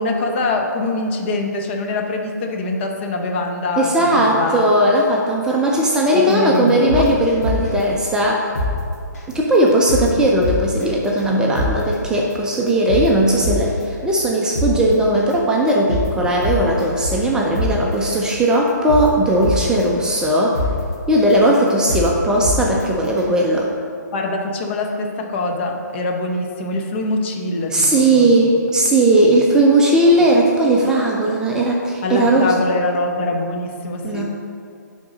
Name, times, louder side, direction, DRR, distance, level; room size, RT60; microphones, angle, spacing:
voice 1, 0.0-4.7 6.1-7.2 10.2-10.3 24.1-28.3 32.0-34.2, left 2 dB, 40° left, 2 dB, 0.9 m, -23 dB
voice 2, 3.8-8.4 9.3-20.6 21.1-23.7 27.7-32.5 34.0-34.2, right 1 dB, 5° right, -2 dB, 0.5 m, -17 dB
sound 1, 6.1-6.3 6.7-7.8 8.2-8.3 8.5-8.7 9.1-9.3 9.7-10.1 10.4-10.8 11.2-11.3 11.5-11.7 12.1-12.3 12.7-13.8 14.2-14.3 14.5-14.7 15.1-15.3 15.7-16.1 16.4-17.3 17.5-17.7 18.1-18.3 18.7-19.8 20.2-20.3 20.5-20.7 21.1-21.3 21.7-22.1 22.4-22.8 23.2-23.3, left 1 dB, 60° left, 2.0 m, -23 dB
9.6 x 3.9 x 5.1 m, 2.3 s
hypercardioid pair, 145°, 10 cm